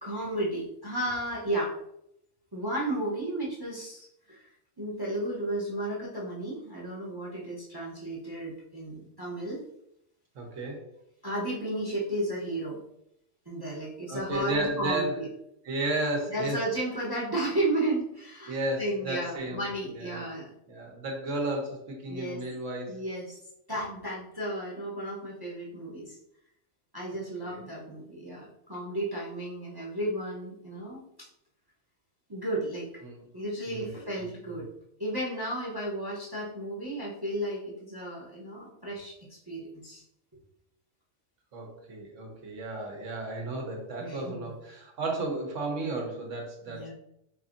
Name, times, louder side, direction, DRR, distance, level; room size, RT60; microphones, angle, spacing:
voice 1, 0.0-1.7 2.5-9.6 11.2-12.8 13.5-15.3 16.3-20.5 22.1-22.4 22.9-23.4 23.7-26.2 26.9-31.3 32.3-32.9 33.3-34.7 35.0-40.0 44.0-44.5 46.7-46.9, right 1 dB, 25° right, -5 dB, 0.7 m, -33 dB
voice 2, 10.3-10.9 14.1-15.2 15.6-16.6 18.5-19.7 19.9-20.3 20.7-23.0 27.4-27.6 33.0-33.2 33.7-33.9 34.2-34.3 41.5-46.9, right 2 dB, 75° right, 1 dB, 1.3 m, -33 dB
4.7 x 2.6 x 2.5 m, 0.78 s
omnidirectional pair, 1.3 m